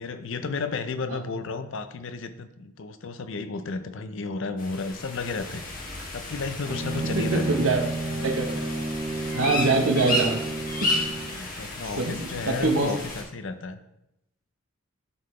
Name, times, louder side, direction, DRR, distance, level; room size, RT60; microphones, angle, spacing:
voice 1, 0.0-5.6 6.1-7.5 8.2-8.3 11.2-13.8, left 4 dB, 60° left, 10 dB, 0.5 m, -33 dB
sound 1, 4.6-13.2, left 1 dB, 40° left, 1.2 m, -33 dB
Bowed string instrument, 6.7-11.4, right 2 dB, 25° right, 0.9 m, -31 dB
voice 2, 7.2-7.8 8.2-8.5 9.3-10.4 10.8-10.9 11.3-11.5 12.0-12.9, right 3 dB, 60° right, 3 dB, 1.0 m, -24 dB
11.0 x 3.9 x 3.2 m, 0.85 s
head